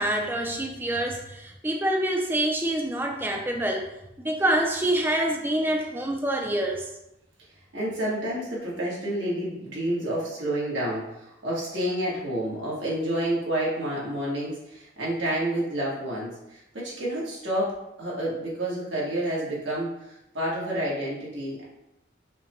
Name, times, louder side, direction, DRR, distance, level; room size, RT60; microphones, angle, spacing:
voice 1, 0.0-3.9 4.2-6.9, right 1 dB, 10° right, 1 dB, 0.4 m, -26 dB
voice 2, 7.7-21.6, right 1 dB, 85° right, -6 dB, 1.4 m, -29 dB
5.0 x 2.2 x 3.0 m, 0.87 s
head